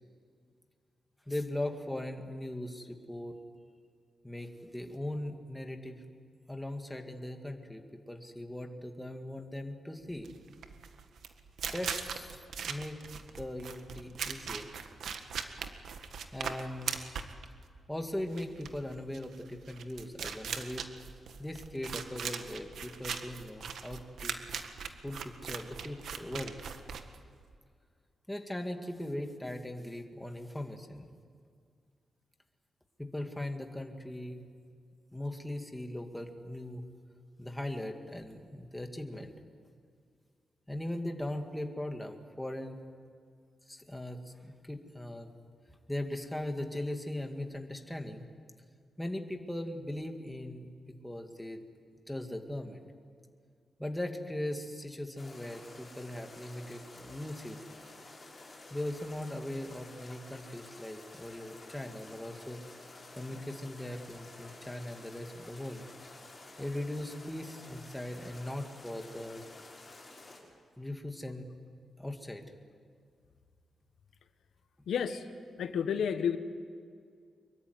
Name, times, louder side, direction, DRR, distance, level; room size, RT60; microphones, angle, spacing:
voice 1, 1.3-3.4 4.2-6.0 6.5-10.3 11.7-13.0 13.4-14.7 16.3-17.0 17.9-20.9 21.4-24.5 25.0-26.6 28.3-31.0 33.0-34.4 35.1-36.8 37.4-39.3 40.7-42.9 43.7-45.3 45.9-48.3 49.0-50.7 51.0-51.6 52.1-52.9 53.8-57.6 58.7-62.6 63.2-65.8 66.6-69.4 70.8-71.5 72.0-72.5, left 1 dB, 5° left, 4 dB, 2.1 m, -39 dB
sound 1, 10.2-27.5, right 6 dB, 80° right, 1.7 m, -40 dB
sound 2, 55.2-70.4, left 2 dB, 30° left, 6.4 m, -51 dB
voice 2, 74.9-75.3 75.6-76.4, left 7 dB, 85° left, 9 dB, 1.4 m, -30 dB
25.0 x 23.0 x 9.6 m, 2.2 s
wide cardioid pair, 140°, 0 cm